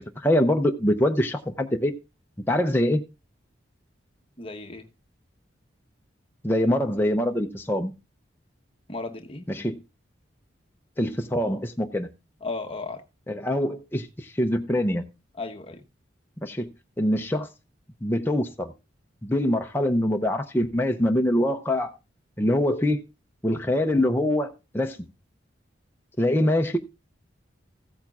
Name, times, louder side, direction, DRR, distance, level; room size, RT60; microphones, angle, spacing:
voice 1, 0.0-1.9 2.5-3.0 6.4-7.9 9.5-9.8 11.0-12.1 13.3-15.1 16.4-16.7 17.0-17.5 18.0-18.7 19.2-21.9 22.4-23.0 23.4-25.0 26.2-26.8, left 1 dB, 10° left, 0.6 m, -24 dB
voice 2, 4.4-4.9 8.9-9.5 12.4-13.0 15.3-15.8, left 3 dB, 30° left, 1.0 m, -35 dB
15.0 x 8.7 x 2.4 m
head